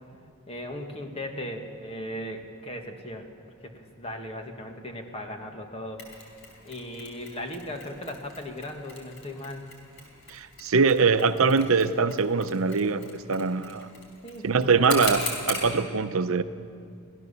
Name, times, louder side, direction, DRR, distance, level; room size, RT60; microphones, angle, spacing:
voice 1, 0.5-3.3 3.6-6.1 6.6-9.7 14.2-15.1, left 1 dB, 25° left, 4 dB, 1.7 m, -37 dB
Mechanisms, 6.0-15.7, left 2 dB, 55° left, 4.4 m, -39 dB
voice 2, 10.3-13.9 14.4-16.4, right 4 dB, 70° right, 11 dB, 0.7 m, -23 dB
24.0 x 16.0 x 7.0 m, 2.3 s
head